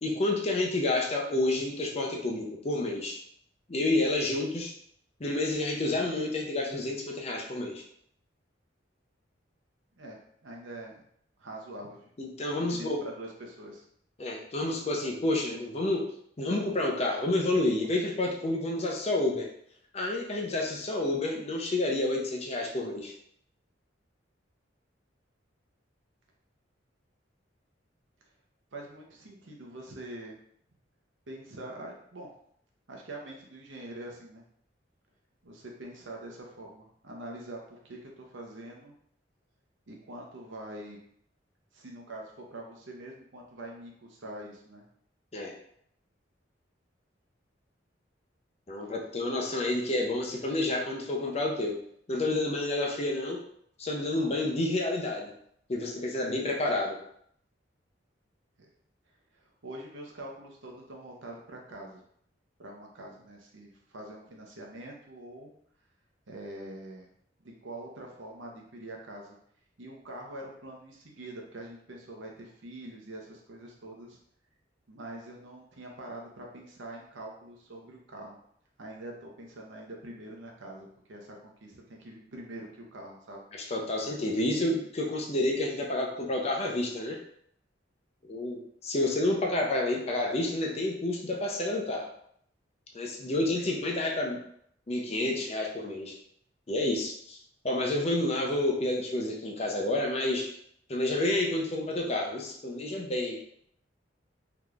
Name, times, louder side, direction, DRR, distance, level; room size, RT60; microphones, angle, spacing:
voice 1, 0.0-3.2 3.7-4.7 5.2-7.8 12.2-13.0 14.2-16.1 16.4-19.5 19.9-23.1 45.3-45.5 48.7-51.8 52.1-53.4 53.8-55.3 55.7-57.0 83.7-87.2 88.2-92.1 92.9-94.4 94.9-96.2 96.7-97.4 97.6-100.5 100.9-103.5, left 2 dB, 35° left, 0 dB, 0.6 m, -29 dB
voice 2, 10.0-11.0 11.4-12.1 12.6-13.8 28.7-30.3 31.3-32.3 32.9-34.4 35.4-38.9 39.9-41.0 41.7-44.8 59.4-62.0 62.6-65.5 66.3-67.1 67.4-69.4 69.8-74.2 74.9-78.4 78.8-83.4 93.2-93.4, right 1 dB, 85° right, 0 dB, 0.8 m, -44 dB
3.5 x 2.9 x 2.4 m, 0.67 s
head